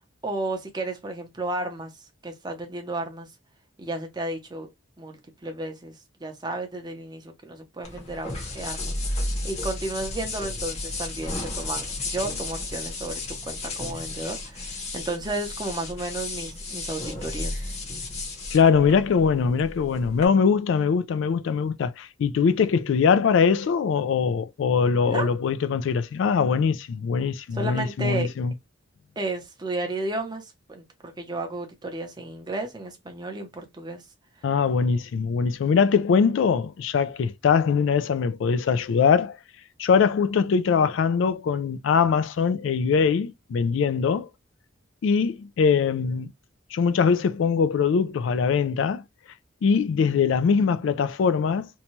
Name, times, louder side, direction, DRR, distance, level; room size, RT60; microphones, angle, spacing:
voice 1, 0.2-3.3 3.8-4.7 5.0-17.8 25.1-25.3 27.5-28.3 29.2-34.0, right 2 dB, 20° right, 0.6 m, -33 dB
sound 1, 7.8-20.3, left 2 dB, 35° left, 0.8 m, -33 dB
voice 2, 18.5-28.5 34.4-39.4 39.8-44.3 45.0-46.3 46.7-49.0 49.6-51.7, left 6 dB, 70° left, 0.3 m, -22 dB
2.7 x 2.2 x 2.9 m
head